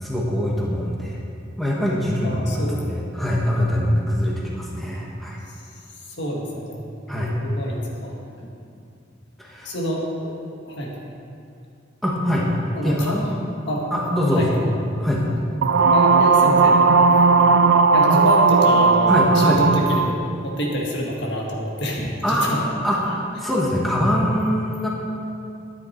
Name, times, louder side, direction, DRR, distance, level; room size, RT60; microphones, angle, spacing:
voice 1, 0.0-1.2 1.6-5.4 7.1-7.3 9.4-9.7 12.0-12.5 12.8-13.3 13.9-14.7 15.0-15.2 19.1-19.6 22.2-24.9, equal, ahead, -5 dB, 1.4 m, -23 dB
voice 2, 2.2-2.8 5.5-5.6 6.2-8.5 9.6-10.4 10.6-10.9 12.7-13.2 13.7-13.9 14.4-14.5 15.9-16.8 17.9-20.2 20.4-22.6, equal, 60° left, -2 dB, 1.8 m, -27 dB
sound 1, 15.6-20.1, right 4 dB, 70° right, 0.5 m, -16 dB
11.5 x 9.4 x 4.5 m, 2.5 s
head